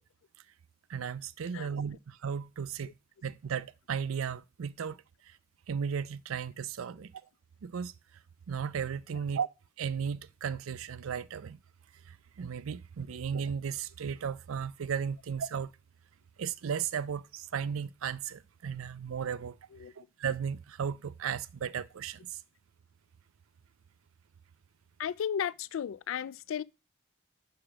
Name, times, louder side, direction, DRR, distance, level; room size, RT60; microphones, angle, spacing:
voice 1, 0.9-2.9 3.2-5.0 5.3-5.4 5.7-7.1 7.6-7.9 8.5-9.5 9.8-11.6 12.1-15.7 16.4-19.5 20.0-22.4, right 7 dB, 85° right, 0.4 m, -35 dB
voice 2, 25.0-26.6, left 8 dB, 75° left, 0.3 m, -34 dB
4.9 x 4.9 x 6.1 m
head